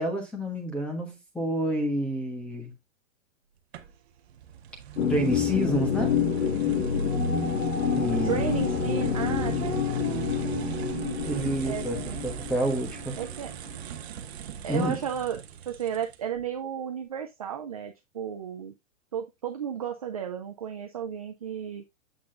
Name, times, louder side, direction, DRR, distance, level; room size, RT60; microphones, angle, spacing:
voice 1, 0.0-2.7 5.1-6.1 7.9-8.4 11.2-13.2 14.7-15.0, equal, 5° left, 1.2 m, -29 dB
sound 1, 3.7-16.4, right 9 dB, 50° right, 1.0 m, -40 dB
sound 2, 5.0-13.5, left 6 dB, 75° left, 2.0 m, -28 dB
voice 2, 8.2-12.2 13.2-13.5 14.6-18.7 19.1-21.8, right 8 dB, 30° right, 0.4 m, -34 dB
7.9 x 5.9 x 2.5 m
hypercardioid pair, 170°, 39 cm